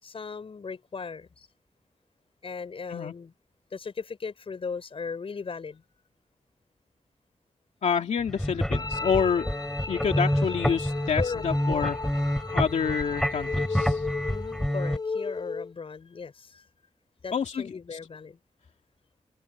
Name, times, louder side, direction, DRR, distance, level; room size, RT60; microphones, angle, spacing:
voice 1, 0.0-1.5 2.4-3.3 3.7-5.8 11.2-12.0 14.3-16.7 17.2-18.4, left 5 dB, 55° left, 5.8 m, -37 dB
voice 2, 7.8-9.5 9.9-12.0 12.5-14.1 17.3-18.0, left 6 dB, 85° left, 2.5 m, -28 dB
sound 1, 8.2-15.0, equal, 5° left, 3.7 m, -28 dB
sound 2, 8.7-15.7, left 4 dB, 35° left, 2.9 m, -35 dB
open air
wide cardioid pair, 140°, 12 cm